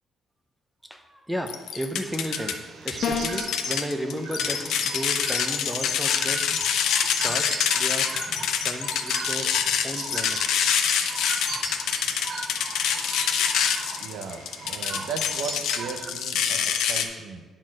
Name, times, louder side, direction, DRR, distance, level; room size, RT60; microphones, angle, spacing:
voice 1, 0.9-6.5 7.1-8.1 8.5-9.5 9.8-10.6, equal, 5° right, 5 dB, 0.6 m, -34 dB
sound 1, 1.5-2.5 2.9-17.0, left 8 dB, 85° left, 0.8 m, -25 dB
sound 2, 2.1-16.1, right 4 dB, 45° right, 0.7 m, -39 dB
sound 3, 3.0-3.5, left 5 dB, 55° left, 0.9 m, -27 dB
voice 2, 14.0-17.4, right 5 dB, 80° right, 5 dB, 0.9 m, -36 dB
9.9 x 4.5 x 6.0 m, 1.4 s
cardioid pair, 175°, 0 cm